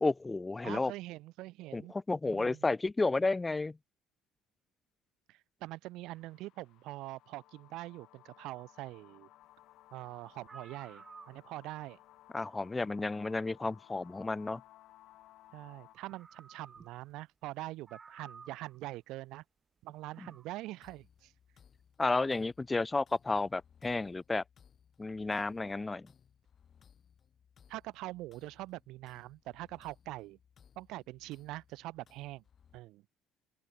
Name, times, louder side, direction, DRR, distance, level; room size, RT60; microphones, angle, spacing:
voice 1, 0.0-0.9 1.7-3.8 12.3-14.6 20.2-20.3 22.0-24.4 25.0-26.1, left 3 dB, 10° left, 0.3 m, -32 dB
voice 2, 0.6-1.9 2.2-2.6 5.3-9.3 9.9-12.0 15.5-19.4 19.8-21.3 27.7-30.4 30.8-32.4 32.7-33.0, right 18 dB, 65° right, 0.4 m, -44 dB
sound 1, 6.1-16.0, left 15 dB, 60° left, 3.3 m, -60 dB
sound 2, 10.0-10.1 10.4-11.8 13.2-13.3 15.5-15.6 15.9-17.1 17.4-17.5 17.9-18.8 19.9-20.5, right 5 dB, 20° right, 3.0 m, -54 dB
sound 3, 20.8-32.8, left 8 dB, 30° left, 4.5 m, -65 dB
open air
cardioid pair, 160°, 0 cm